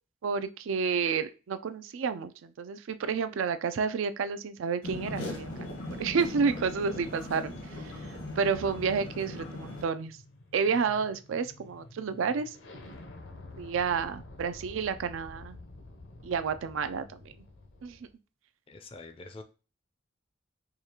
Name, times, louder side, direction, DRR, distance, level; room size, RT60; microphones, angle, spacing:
voice 1, 0.2-5.5 6.0-7.5 8.4-10.2 10.5-12.6 13.6-15.6 16.2-17.2 17.8-18.0, right 5 dB, 85° right, 0.4 m, -30 dB
sound 1, 4.8-9.8, left 1 dB, 85° left, 1.2 m, -39 dB
sound 2, 9.3-18.1, left 2 dB, 65° left, 0.6 m, -50 dB
voice 2, 18.7-19.4, left 3 dB, 30° left, 0.4 m, -45 dB
4.8 x 2.3 x 2.9 m
head